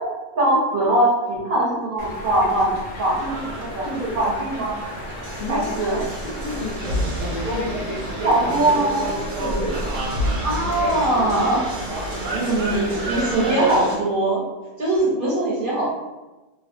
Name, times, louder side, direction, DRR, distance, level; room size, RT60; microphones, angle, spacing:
voice 1, 0.0-2.7 3.0-3.2 3.6-3.9 4.1-4.7 5.5-6.0 8.2-9.0 10.4-11.6 12.3-14.4 14.8-15.9, right 1 dB, 55° right, -6 dB, 0.7 m, -21 dB
sound 1, 2.0-13.5, equal, 85° left, 1.0 m, -35 dB
sound 2, 3.0-14.0, right 1 dB, 85° right, 1.0 m, -29 dB
voice 2, 3.2-3.5 3.8-4.2 5.4-10.1, equal, 45° left, -8 dB, 0.6 m, -32 dB
2.6 x 2.2 x 2.4 m, 1.1 s
omnidirectional pair, 1.3 m